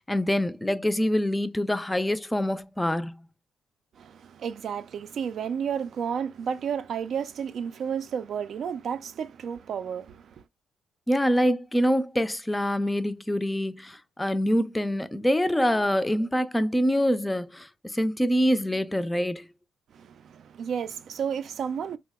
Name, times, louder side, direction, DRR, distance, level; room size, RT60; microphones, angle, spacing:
voice 1, 0.0-3.3 11.1-19.5, equal, 10° left, 0.4 m, -25 dB
voice 2, 4.0-10.4 19.9-22.0, right 7 dB, 60° right, 0.4 m, -32 dB
2.9 x 2.0 x 3.5 m
cardioid pair, 90°, 0 cm